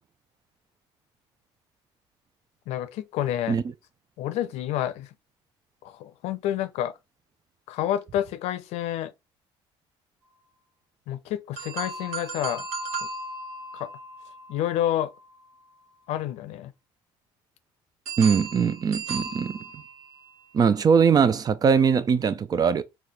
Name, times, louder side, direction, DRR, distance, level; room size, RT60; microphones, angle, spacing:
voice 1, 2.7-3.6 4.2-5.1 5.8-6.9 7.7-9.1 11.1-12.7 13.0-13.1 13.7-13.9 14.5-15.1 16.1-16.7, left 12 dB, 75° left, 0.6 m, -29 dB
sound 1, 11.6-15.6 18.1-20.4, right 3 dB, 80° right, 1.3 m, -36 dB
voice 2, 18.2-19.6 20.5-22.8, right 6 dB, 35° right, 0.5 m, -21 dB
4.0 x 2.4 x 3.1 m
supercardioid pair, 90°, 11 cm